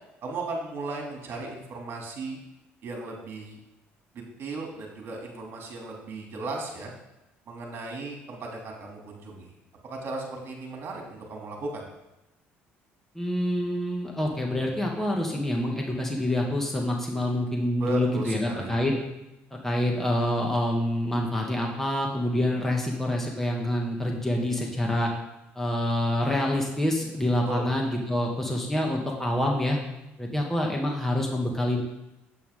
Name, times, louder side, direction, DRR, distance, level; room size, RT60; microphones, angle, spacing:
voice 1, 0.2-2.4 2.8-3.6 4.1-6.9 7.5-9.5 9.8-11.8 17.8-18.9 27.5-27.7, right 3 dB, 50° right, 0 dB, 2.9 m, -36 dB
voice 2, 13.2-18.9 19.5-25.1 25.6-29.8 30.2-31.8, left 1 dB, 5° left, -1 dB, 2.0 m, -27 dB
8.6 x 8.5 x 3.8 m, 0.95 s
supercardioid pair, 85°, 5 cm